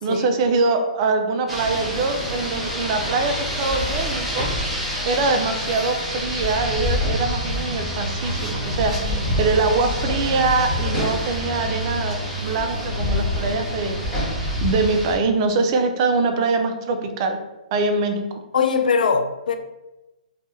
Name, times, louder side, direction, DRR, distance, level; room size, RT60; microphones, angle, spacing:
voice 1, 0.0-4.5 5.1-14.0 14.6-17.4 17.7-18.2, right 3 dB, 35° right, 0.4 m, -23 dB
Rain, 1.5-15.2, left 1 dB, 5° right, 0.8 m, -26 dB
voice 2, 18.5-19.6, left 5 dB, 75° left, 0.4 m, -20 dB
3.3 x 2.2 x 2.7 m
hypercardioid pair, 145°, 4 cm